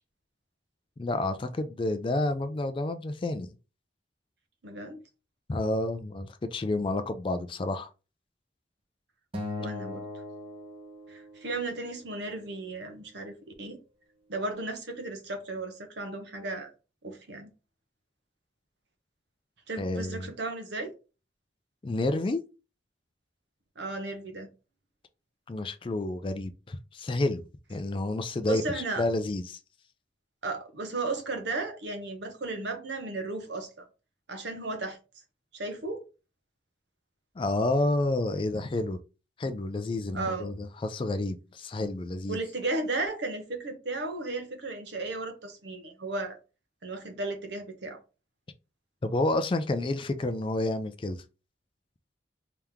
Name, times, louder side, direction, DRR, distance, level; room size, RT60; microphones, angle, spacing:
voice 1, 1.0-3.5 5.5-7.9 19.8-20.3 21.8-22.4 25.5-27.4 27.7-29.6 37.4-39.0 39.4-42.4 49.0-51.2, left 2 dB, 30° left, 0.4 m, -30 dB
voice 2, 4.6-5.0 9.6-10.0 11.1-13.8 14.3-16.7 17.0-17.5 19.7-20.9 23.8-24.5 28.5-29.0 30.4-33.9 34.3-35.0 35.5-36.0 40.1-40.5 42.3-46.4 46.8-48.0, right 2 dB, 75° right, 0.9 m, -35 dB
Acoustic guitar, 9.3-11.7, left 2 dB, 30° right, 0.8 m, -39 dB
3.4 x 2.9 x 3.5 m
head